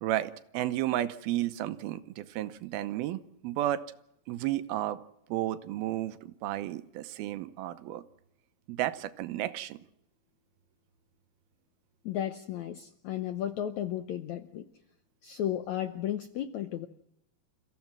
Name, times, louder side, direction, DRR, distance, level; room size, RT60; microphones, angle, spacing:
voice 1, 0.0-3.8 4.3-5.0 5.3-8.0 8.7-9.8, right 13 dB, 80° right, 11 dB, 2.7 m, -32 dB
voice 2, 12.0-14.7 15.2-16.9, left 11 dB, 75° left, 9 dB, 1.7 m, -34 dB
29.5 x 15.5 x 6.0 m, 0.78 s
omnidirectional pair, 4.4 m